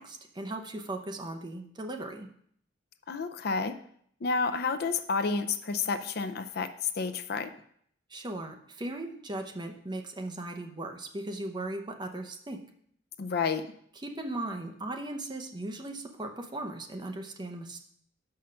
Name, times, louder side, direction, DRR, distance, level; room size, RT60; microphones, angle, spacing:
voice 1, 0.0-2.3 8.1-12.6 14.0-17.8, right 2 dB, 25° right, 4 dB, 0.8 m, -38 dB
voice 2, 3.1-3.7 4.2-7.5 13.2-13.6, left 4 dB, 60° left, 9 dB, 0.5 m, -30 dB
6.3 x 5.7 x 5.6 m, 0.65 s
head